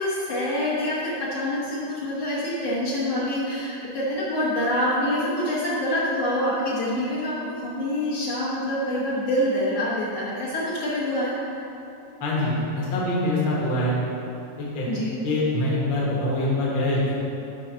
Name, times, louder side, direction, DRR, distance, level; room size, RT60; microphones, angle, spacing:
voice 1, 0.0-11.3 14.9-15.2, left 1 dB, 65° left, -8 dB, 1.9 m, -26 dB
voice 2, 12.2-14.0 14.6-14.9 15.2-17.1, left 1 dB, 50° left, -5 dB, 1.7 m, -24 dB
7.7 x 4.0 x 6.1 m, 2.8 s
omnidirectional pair, 3.5 m